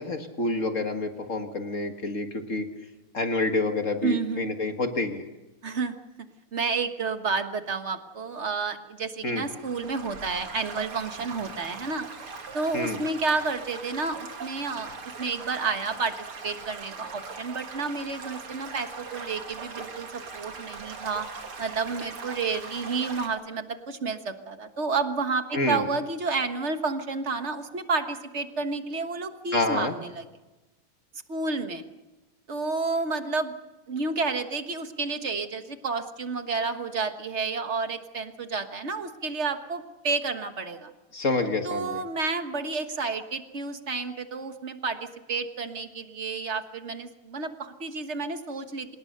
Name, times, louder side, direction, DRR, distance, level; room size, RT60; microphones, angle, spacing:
voice 1, 0.0-2.7 3.1-5.2 9.2-9.5 12.7-13.0 25.5-25.9 29.5-29.9 41.1-42.0, left 2 dB, 40° left, 5 dB, 1.9 m, -28 dB
voice 2, 4.0-4.5 5.6-5.9 6.5-12.0 12.5-14.9 15.2-16.1 16.4-21.3 21.6-30.2 31.3-31.8 32.5-33.5 33.9-40.9 41.6-45.0 45.3-48.9, right 4 dB, 35° right, 8 dB, 1.5 m, -30 dB
Stream / Gurgling / Trickle dribble, 9.4-23.3, right 4 dB, 85° right, 3.3 m, -41 dB
25.5 x 20.0 x 6.7 m, 1.1 s
omnidirectional pair, 2.4 m